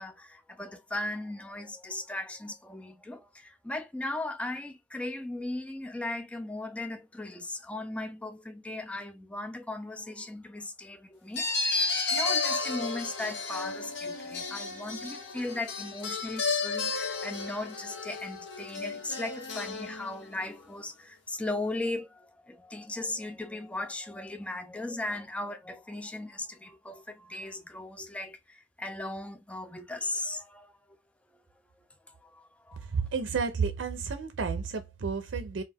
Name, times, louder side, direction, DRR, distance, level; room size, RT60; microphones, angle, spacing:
voice 1, 0.0-31.0 32.1-32.8, left 2 dB, 5° left, 0.3 m, -37 dB
sound 1, 11.4-20.4, left 4 dB, 70° left, 0.7 m, -33 dB
voice 2, 32.9-35.6, right 5 dB, 85° right, 0.5 m, -31 dB
2.3 x 2.2 x 3.4 m
head